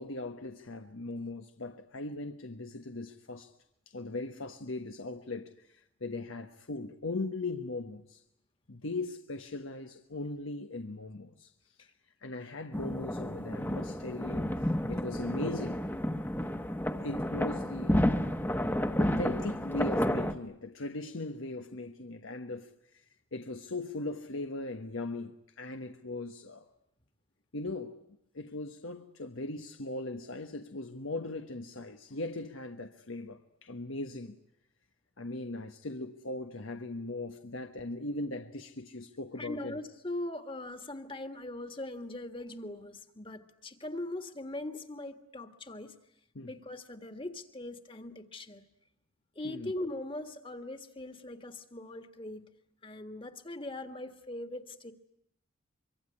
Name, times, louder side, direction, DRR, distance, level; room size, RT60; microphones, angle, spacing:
voice 1, 0.0-3.5 3.9-8.2 8.7-11.5 11.8-11.9 12.2-15.8 16.9-18.2 19.0-26.7 27.5-28.0 28.3-34.4 35.2-39.8 46.3-46.5 49.4-49.7, left 2 dB, 90° left, 1.2 m, -39 dB
sound 1, 12.7-20.3, equal, 10° left, 1.1 m, -31 dB
voice 2, 39.4-46.0 46.4-48.6 49.3-52.5 52.8-54.9, left 1 dB, 25° left, 1.7 m, -40 dB
24.5 x 24.5 x 9.9 m
head